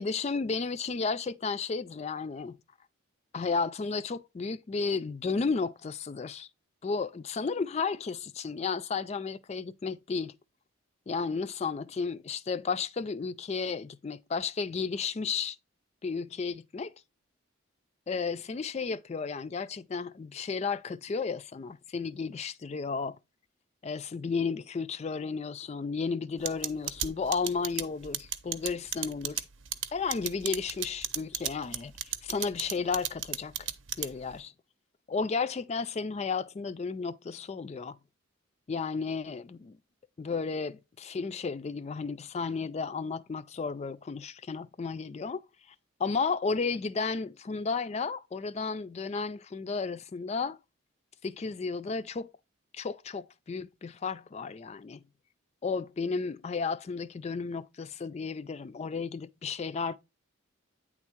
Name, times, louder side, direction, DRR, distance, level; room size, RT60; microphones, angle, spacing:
voice 1, 0.0-2.6 3.3-6.5 6.8-10.3 11.1-15.6 16.0-16.9 18.1-23.2 23.8-29.4 29.9-33.7 34.0-34.5 35.1-38.0 38.7-39.8 40.2-45.4 46.0-50.6 51.2-52.3 52.7-55.0 55.6-60.0, left 4 dB, 30° left, 0.3 m, -33 dB
sound 1, 26.5-34.4, right 10 dB, 65° right, 0.7 m, -33 dB
9.2 x 3.6 x 4.4 m
head